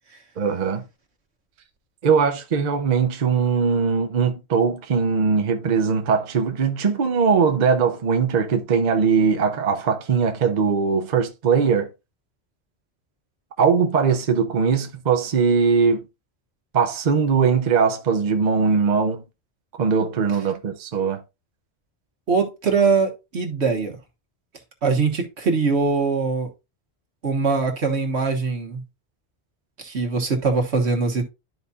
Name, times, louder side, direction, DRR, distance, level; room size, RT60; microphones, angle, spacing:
voice 1, 0.4-0.8 2.0-11.9 13.6-16.0 16.7-19.2 19.8-21.2, right 5 dB, 45° right, 0.8 m, -20 dB
voice 2, 22.3-24.0 24.8-26.5 27.2-28.8 29.8-31.2, right 4 dB, 80° right, 1.6 m, -22 dB
12.0 x 4.1 x 2.3 m
omnidirectional pair, 1.1 m